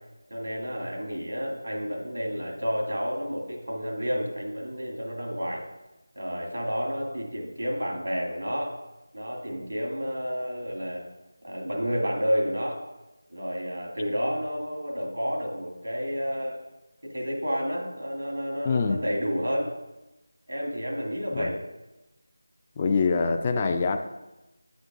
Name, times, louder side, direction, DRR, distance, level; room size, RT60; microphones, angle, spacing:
voice 1, 0.3-5.6 6.2-8.8 9.1-11.1 11.4-12.8 13.3-16.6 17.0-19.7 20.5-21.6, equal, 85° right, -1 dB, 2.3 m, -30 dB
voice 2, 18.6-19.0 21.3-21.5 22.8-24.0, left 4 dB, 25° left, 6 dB, 0.3 m, -24 dB
8.1 x 6.9 x 2.6 m, 1.0 s
figure-of-eight pair, 170°, 0 cm